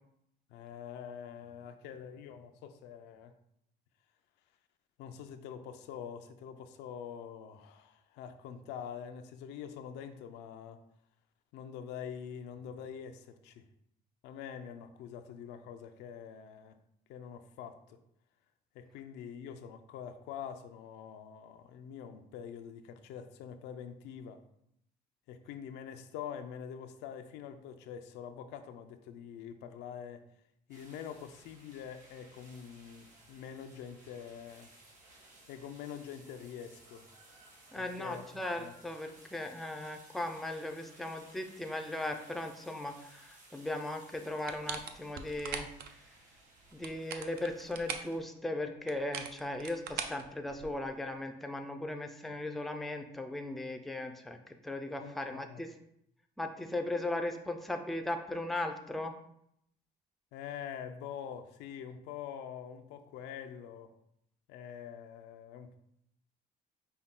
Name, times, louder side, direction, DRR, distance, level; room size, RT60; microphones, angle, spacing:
voice 1, 0.5-3.3 5.0-10.8 11.5-13.6 14.2-16.8 17.1-18.0 18.7-24.4 25.3-30.2 30.7-34.7 35.5-37.1 37.8-38.7 55.0-55.6 60.3-63.9 64.5-65.8, left 8 dB, 90° left, 8 dB, 0.4 m, -45 dB
sound 1, 30.7-48.2, right 2 dB, 50° right, 1.4 m, -59 dB
voice 2, 37.7-45.7 46.7-55.7 56.4-59.1, left 1 dB, ahead, 5 dB, 0.4 m, -37 dB
sound 2, 44.5-45.9 46.7-48.2 48.9-50.9, right 7 dB, 70° right, 0.5 m, -41 dB
5.4 x 2.2 x 3.6 m, 0.74 s
cardioid pair, 110°, 17 cm